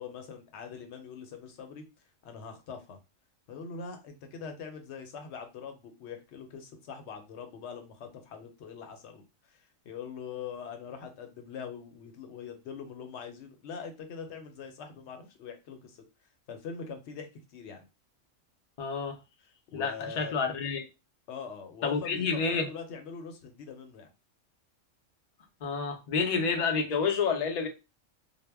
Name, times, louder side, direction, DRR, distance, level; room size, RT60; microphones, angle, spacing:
voice 1, 0.0-1.8 2.2-3.0 3.5-16.0 16.5-17.9 19.7-20.4 21.3-24.1, left 6 dB, 65° left, 0.8 m, -43 dB
voice 2, 18.8-19.2 19.7-20.8 21.8-22.7 25.6-27.7, left 5 dB, 80° left, 0.3 m, -29 dB
2.1 x 2.0 x 3.3 m
omnidirectional pair, 1.3 m